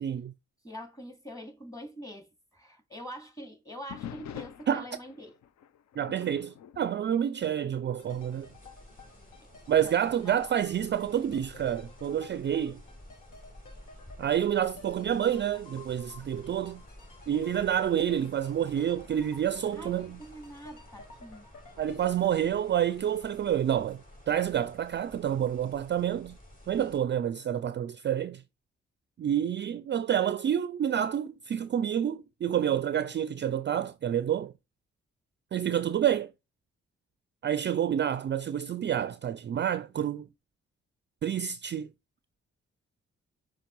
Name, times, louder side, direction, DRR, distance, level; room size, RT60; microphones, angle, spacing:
voice 1, 0.0-0.3 4.7-4.8 6.0-8.5 9.7-12.8 14.2-16.8 17.3-20.2 21.8-26.4 26.7-28.4 29.2-34.5 35.5-36.3 37.4-40.3 41.2-41.9, right 10 dB, 40° right, 0.4 m, -28 dB
voice 2, 0.6-2.3 2.5-5.3 9.8-10.4 19.7-21.5, equal, 10° left, 2.5 m, -44 dB
sound 1, 3.9-8.0 8.4-8.7 9.3-9.4 10.2-12.9 14.7-15.2, left 9 dB, 65° left, 0.6 m, -48 dB
sound 2, 8.0-23.9 24.2-24.3, left 4 dB, 85° left, 1.2 m, -53 dB
sound 3, 8.1-27.0, equal, 30° left, 3.3 m, -52 dB
5.7 x 3.3 x 5.4 m
hypercardioid pair, 40°, 30 cm